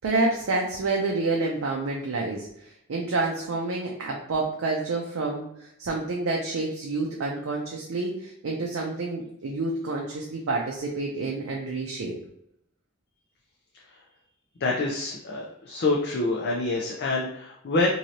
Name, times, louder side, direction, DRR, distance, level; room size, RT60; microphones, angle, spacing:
voice 1, 0.0-12.1, right 3 dB, 90° right, -1 dB, 0.5 m, -28 dB
voice 2, 14.6-17.9, left 2 dB, 55° left, -2 dB, 0.5 m, -26 dB
3.1 x 2.7 x 2.7 m, 0.77 s
head